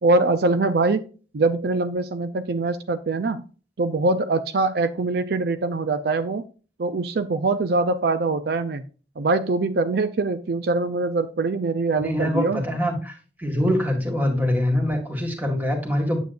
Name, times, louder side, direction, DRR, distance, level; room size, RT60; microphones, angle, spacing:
voice 1, 0.0-1.0 1.3-3.4 3.8-6.4 6.8-8.8 9.2-12.6, right 3 dB, 60° right, 11 dB, 0.5 m, -23 dB
voice 2, 12.0-16.2, left 1 dB, 10° right, 2 dB, 1.9 m, -24 dB
9.2 x 7.8 x 2.5 m, 0.37 s
head